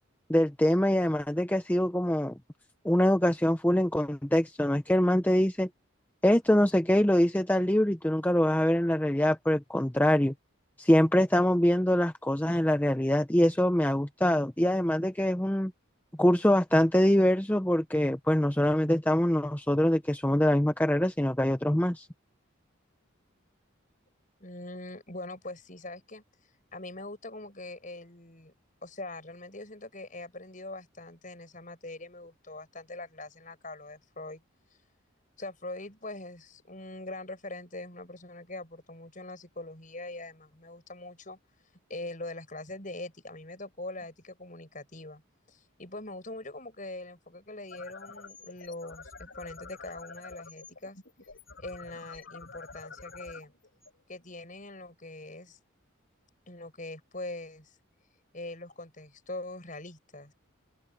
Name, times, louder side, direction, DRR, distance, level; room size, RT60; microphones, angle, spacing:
voice 1, 0.3-2.3 2.8-5.7 6.2-10.3 10.8-15.7 16.2-22.1, left 1 dB, 10° left, 0.7 m, -24 dB
voice 2, 24.4-26.2 26.7-28.5 28.8-34.4 35.4-41.4 41.9-45.2 45.5-51.0 51.6-53.5 54.1-55.6 56.5-57.7 58.3-60.3, left 2 dB, 40° left, 6.4 m, -42 dB
sound 1, 47.6-54.6, left 4 dB, 60° left, 4.9 m, -48 dB
head